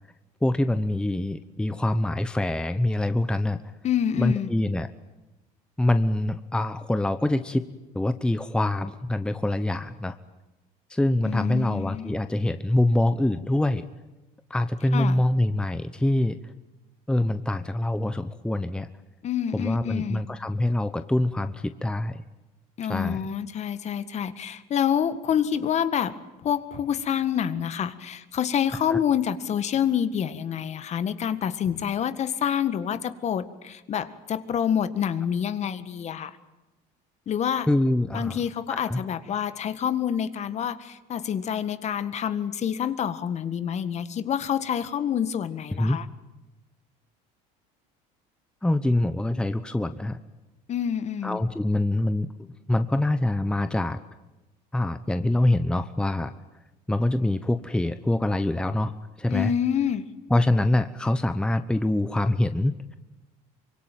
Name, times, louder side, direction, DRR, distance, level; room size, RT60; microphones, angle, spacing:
voice 1, 0.4-3.6 4.2-4.9 5.8-7.6 7.9-10.2 10.9-13.8 14.5-16.4 17.1-18.9 19.5-22.2 22.9-23.2 28.9-29.0 37.7-38.4 38.7-39.0 45.8-46.0 48.6-50.2 51.2-52.3 52.7-54.0 54.7-56.3 56.9-58.9 59.2-59.5 60.3-63.0, left 1 dB, 5° left, 10 dB, 1.0 m, -25 dB
voice 2, 3.8-4.5 11.2-12.2 14.9-15.2 19.2-20.2 22.8-26.1 26.4-36.4 37.3-37.7 38.1-46.1 50.7-51.4 59.3-60.1, left 9 dB, 40° left, 12 dB, 1.7 m, -27 dB
25.0 x 23.5 x 9.2 m, 1.0 s
supercardioid pair, 115°, 17 cm